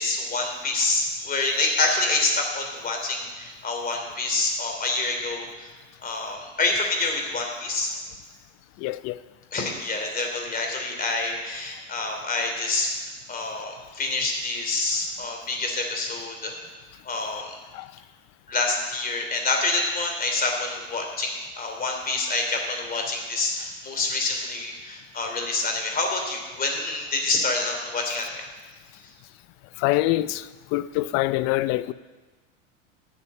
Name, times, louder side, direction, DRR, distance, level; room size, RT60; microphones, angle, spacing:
voice 1, 0.0-5.7 6.0-7.9 9.5-13.0 13.3-16.5 17.0-17.6 18.5-28.3, left 3 dB, 25° left, 3.0 m, -27 dB
voice 2, 8.8-9.2 17.7-17.9 29.8-31.9, left 17 dB, 45° left, 0.5 m, -25 dB
11.5 x 6.9 x 8.6 m
supercardioid pair, 115°, 38 cm